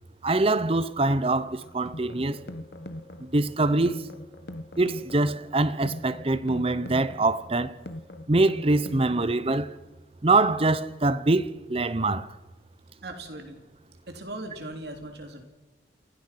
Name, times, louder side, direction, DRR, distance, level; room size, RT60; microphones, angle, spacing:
voice 1, 0.2-2.4 3.2-4.1 4.8-7.8 8.3-9.8 10.2-12.3, right 2 dB, 30° right, 0.8 m, -24 dB
sound 1, 1.6-9.6, left 1 dB, 60° left, 1.3 m, -42 dB
voice 2, 13.0-13.6 14.1-15.5, right 1 dB, 60° right, 3.3 m, -39 dB
28.5 x 16.5 x 5.9 m
head